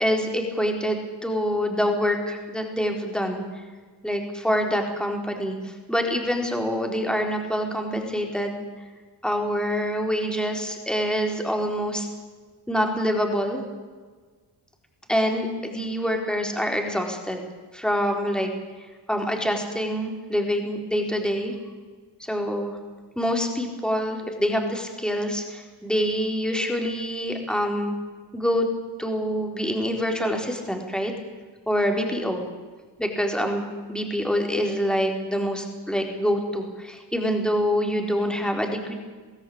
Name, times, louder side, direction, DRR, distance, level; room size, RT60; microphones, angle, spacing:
voice 1, 0.0-3.6 4.0-8.6 9.2-12.1 12.7-13.6 15.1-17.4 17.7-18.5 19.1-21.5 22.3-22.8 23.2-27.9 28.3-28.7 29.0-31.1 31.7-32.5 33.0-38.9, equal, ahead, 2 dB, 4.1 m, -26 dB
22.0 x 16.0 x 8.8 m, 1.4 s
cardioid pair, 95°, 46 cm